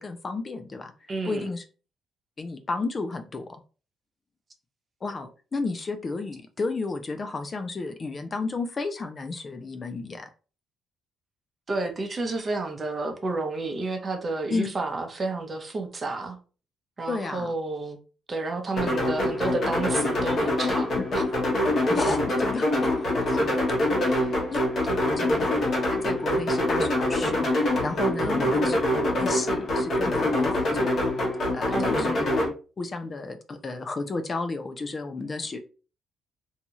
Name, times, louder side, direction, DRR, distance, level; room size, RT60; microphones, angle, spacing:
voice 1, 0.0-0.9 1.2-1.6 2.4-3.6 5.0-10.3 14.5-14.7 17.1-17.5 21.9-23.6 24.5-24.6 25.2-25.5 25.9-28.8 29.2-30.9 31.5-32.3 32.8-35.6, left 3 dB, 35° left, 0.4 m, -32 dB
voice 2, 1.1-1.5 11.7-16.4 17.0-18.0 18.3-21.2 23.3-23.7 24.0-24.4 24.9-25.2 28.2-28.6 31.7-32.1, right 3 dB, 35° right, 0.7 m, -31 dB
sound 1, 18.8-32.5, left 1 dB, 55° left, 1.1 m, -25 dB
2.7 x 2.2 x 2.9 m
cardioid pair, 90°, 0 cm